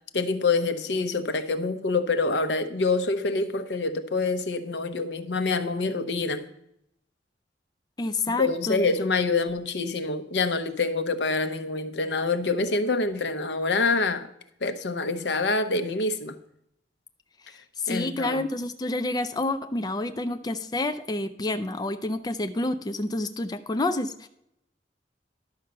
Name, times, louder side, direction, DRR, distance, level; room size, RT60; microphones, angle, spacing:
voice 1, 0.1-6.4 8.4-14.3 14.6-16.4 17.9-18.4, left 3 dB, 80° left, 10 dB, 0.9 m, -26 dB
voice 2, 8.0-8.8 17.5-24.3, left 2 dB, 25° left, 8 dB, 0.4 m, -29 dB
11.5 x 5.6 x 6.6 m, 0.77 s
head